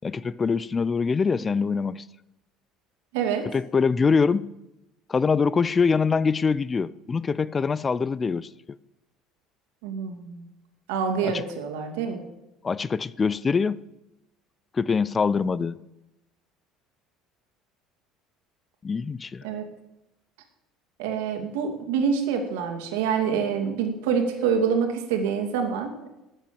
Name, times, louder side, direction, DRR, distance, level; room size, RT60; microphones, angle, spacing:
voice 1, 0.0-2.0 3.5-4.5 5.1-8.5 11.2-11.4 12.6-13.8 14.7-15.8 18.8-19.4, left 5 dB, 25° left, 0.5 m, -24 dB
voice 2, 3.1-3.5 9.8-10.5 10.9-12.2 19.4-19.6 21.0-26.1, right 6 dB, 85° right, 2.4 m, -26 dB
13.0 x 9.0 x 7.0 m
supercardioid pair, 100°, 0 cm